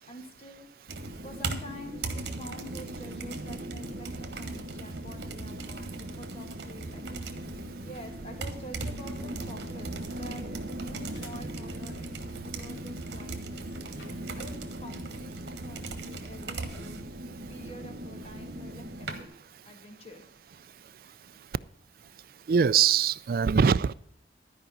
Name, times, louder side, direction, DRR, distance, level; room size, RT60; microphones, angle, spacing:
voice 1, 0.1-7.3 7.8-13.6 14.4-17.0 17.5-19.3 19.6-20.2, equal, 35° left, 1.8 m, -48 dB
sound 1, 0.9-19.2, right 2 dB, 65° right, 1.4 m, -38 dB
sound 2, 6.6-15.0, left 1 dB, 75° left, 1.5 m, -57 dB
voice 2, 22.5-23.9, right 7 dB, 50° right, 0.3 m, -22 dB
12.5 x 5.1 x 7.1 m
head